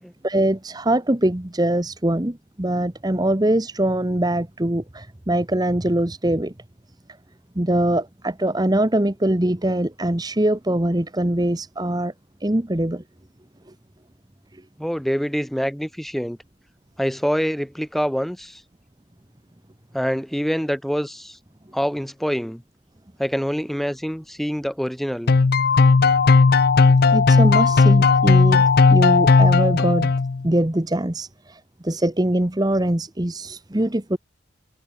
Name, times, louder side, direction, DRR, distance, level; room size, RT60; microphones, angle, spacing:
voice 1, 0.2-6.5 7.5-12.1 12.4-13.0 14.5-14.6 27.1-30.1 30.4-34.2, right 1 dB, 20° right, 1.1 m, -22 dB
voice 2, 14.8-16.4 17.0-18.6 19.9-21.4 21.7-22.6 23.2-25.3 32.0-32.1, equal, ahead, 2.2 m, -25 dB
sound 1, 25.3-30.5, left 4 dB, 50° left, 0.5 m, -15 dB
head